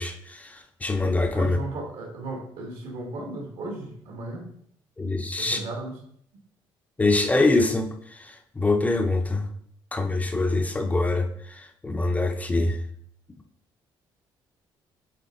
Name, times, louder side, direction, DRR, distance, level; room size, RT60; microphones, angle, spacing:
voice 1, 0.0-1.6 5.0-5.6 7.0-9.5 9.9-12.8, left 2 dB, 15° left, 4 dB, 0.5 m, -24 dB
voice 2, 1.3-4.5 5.4-6.0, right 2 dB, 75° right, 0 dB, 1.9 m, -35 dB
7.8 x 3.5 x 3.8 m, 0.66 s
cardioid pair, 125°, 9 cm